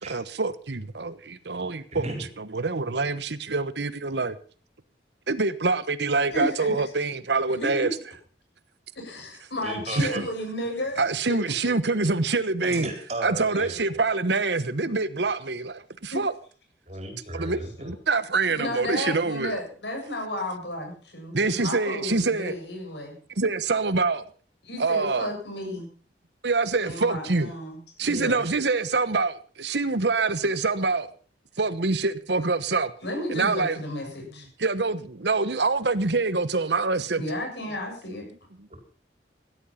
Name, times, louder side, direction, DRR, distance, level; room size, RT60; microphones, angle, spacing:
voice 1, 0.0-2.1 2.5-4.4 5.3-7.9 10.0-10.3 11.0-12.9 13.2-16.3 17.3-17.6 17.9-19.6 21.3-22.6 23.4-24.2 24.8-25.3 26.4-27.5 28.0-31.1 31.6-32.9 33.3-33.8 34.6-37.2 38.6-38.7, right 3 dB, 70° right, 1.1 m, -25 dB
voice 2, 1.9-2.2 9.6-10.2 12.6-14.0 16.9-17.9 38.7-38.8, right 1 dB, 35° right, 4.5 m, -35 dB
voice 3, 6.3-6.7 7.5-7.9 9.0-11.0 11.3-11.4 16.1-16.2 18.6-23.1 24.6-25.9 26.8-28.5 33.0-34.5 37.2-38.3, left 1 dB, 75° left, 7.3 m, -33 dB
16.5 x 12.5 x 5.7 m
head